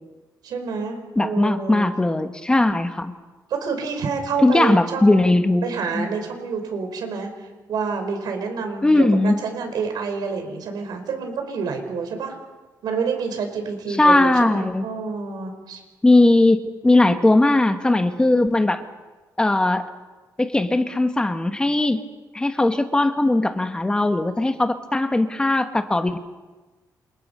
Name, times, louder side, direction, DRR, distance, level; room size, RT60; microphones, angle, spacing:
voice 1, 0.4-1.9 3.5-5.3 5.6-12.3 12.8-15.8, right 5 dB, 80° right, 5 dB, 5.1 m, -28 dB
voice 2, 1.2-3.1 4.4-5.7 5.9-6.1 8.8-9.3 14.0-14.9 16.0-18.9 19.4-19.9 20.4-22.0 22.3-26.2, left 2 dB, 15° left, 7 dB, 1.3 m, -19 dB
28.0 x 28.0 x 5.5 m, 1.2 s
wide cardioid pair, 150°, 7 cm